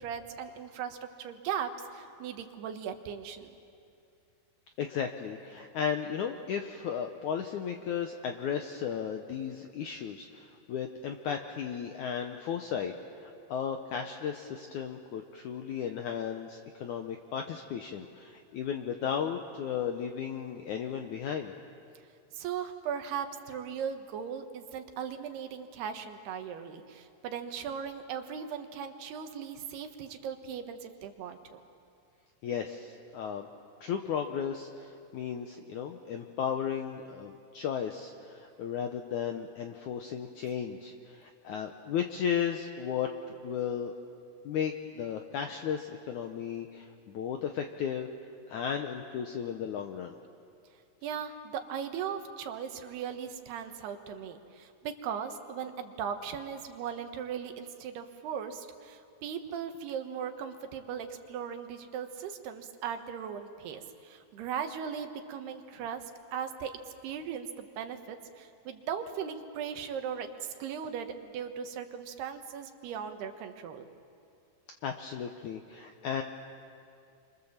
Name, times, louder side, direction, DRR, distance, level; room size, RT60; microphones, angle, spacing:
voice 1, 0.0-3.5 22.3-31.6 51.0-66.0 66.3-66.7 67.0-73.8, right 7 dB, 80° right, 6 dB, 3.3 m, -38 dB
voice 2, 4.8-12.9 13.2-21.5 32.4-33.5 33.8-43.9 44.5-48.1 48.5-50.2 74.8-76.2, left 8 dB, 75° left, 5 dB, 1.8 m, -35 dB
29.5 x 25.0 x 7.3 m, 2.5 s
omnidirectional pair, 4.6 m